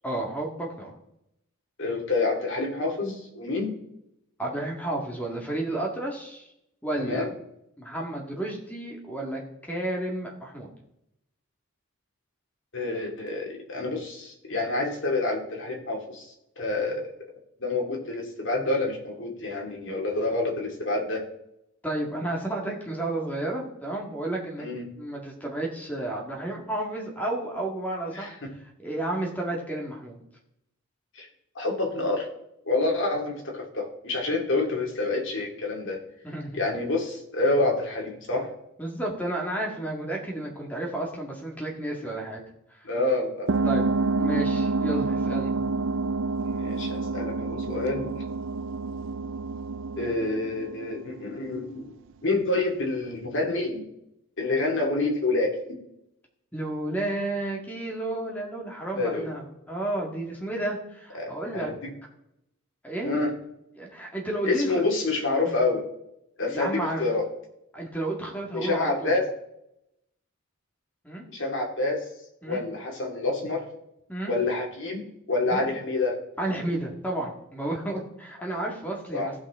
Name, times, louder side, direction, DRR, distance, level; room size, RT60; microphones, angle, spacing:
voice 1, 0.0-0.9 4.4-6.5 6.8-7.3 7.8-10.7 21.8-28.3 28.8-30.2 36.2-36.6 38.8-42.4 42.7-42.9 43.7-43.9 44.2-45.6 56.5-61.7 62.8-63.2 63.8-64.8 65.4-65.6 66.5-67.0 67.7-69.2 71.0-71.2 72.4-72.6 74.1-74.3 75.5-75.6 76.4-79.3, right 1 dB, 5° left, -1 dB, 1.8 m, -32 dB
voice 2, 1.8-3.7 7.0-7.3 12.7-17.1 17.6-21.2 24.6-24.9 28.1-28.5 31.1-31.3 31.6-32.3 32.7-36.0 36.5-38.5 42.8-43.5 46.4-48.1 50.0-51.9 52.2-53.9 54.4-55.8 58.9-59.4 61.2-61.9 63.0-63.3 64.4-65.8 66.4-67.3 68.5-69.3 71.3-72.1 72.4-73.6 74.3-76.2 79.1-79.3, left 2 dB, 60° left, 0 dB, 2.2 m, -28 dB
sound 1, 43.5-51.6, right 3 dB, 60° right, 0.4 m, -28 dB
16.0 x 5.7 x 3.6 m, 0.82 s
head